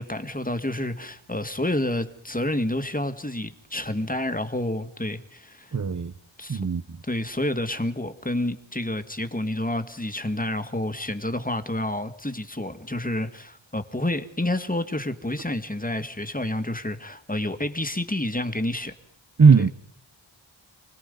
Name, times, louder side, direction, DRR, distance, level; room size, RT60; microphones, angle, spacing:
voice 1, 0.0-5.8 6.4-6.6 7.1-18.9, left 1 dB, 15° left, 2.0 m, -29 dB
voice 2, 5.7-6.1 6.5-7.0 19.4-19.7, right 5 dB, 40° right, 0.8 m, -18 dB
29.0 x 19.5 x 5.5 m
wide cardioid pair, 60°, 48 cm